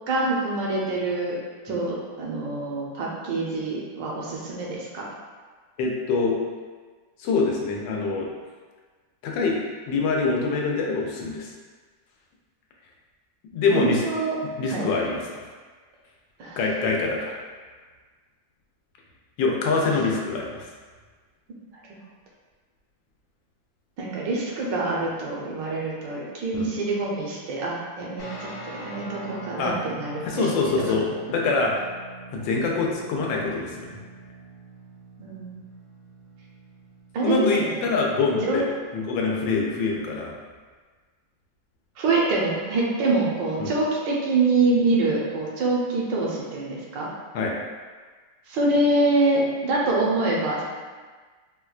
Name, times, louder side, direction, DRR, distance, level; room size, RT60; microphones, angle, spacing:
voice 1, 0.1-1.4 1.6-5.1 13.7-14.4 14.7-14.9 16.4-16.6 24.0-30.9 35.2-35.5 37.1-37.8 38.5-38.6 42.0-47.1 48.5-50.6, right 2 dB, 80° right, -3 dB, 1.3 m, -25 dB
voice 2, 5.8-6.4 7.2-8.3 9.2-9.6 9.9-11.5 13.5-14.0 14.6-15.4 16.6-17.4 19.4-20.6 26.5-26.7 29.6-29.7 30.2-31.9 32.3-34.0 37.2-38.7 38.9-40.3 43.6-43.7 47.3-47.5, left 4 dB, 90° left, -1 dB, 1.3 m, -24 dB
Guitar, 28.2-37.3, right 1 dB, 60° left, 0.7 m, -43 dB
4.2 x 2.2 x 2.3 m, 1.4 s
omnidirectional pair, 2.0 m